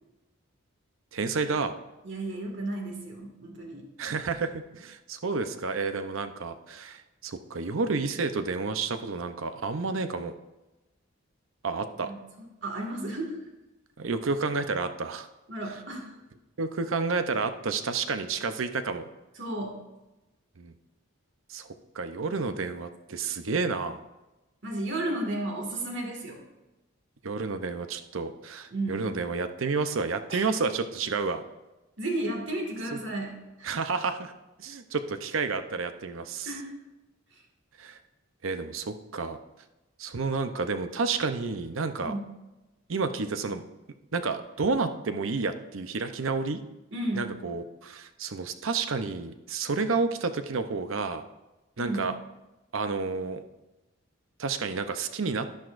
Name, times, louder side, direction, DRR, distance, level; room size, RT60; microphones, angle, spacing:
voice 1, 1.1-1.7 4.0-10.3 11.6-12.1 14.0-15.3 16.6-19.1 20.6-20.7 21.5-21.7 21.9-24.0 27.2-31.4 32.9-33.0 33.6-34.3 34.6-36.6 37.8-38.0 38.4-39.4 40.0-42.1 42.9-43.6 44.1-46.6 47.1-51.2 51.8-52.2 52.7-53.4 54.4-55.5, right 4 dB, 75° right, 9 dB, 0.7 m, -30 dB
voice 2, 2.0-3.8 12.1-12.2 12.6-13.4 15.5-16.1 19.4-19.8 24.6-26.4 28.7-29.0 30.3-30.4 32.0-33.7 36.4-36.8 42.0-42.3 46.9-47.3 51.8-52.1, right 1 dB, 60° right, 1 dB, 2.1 m, -33 dB
11.5 x 10.5 x 2.6 m, 1.0 s
head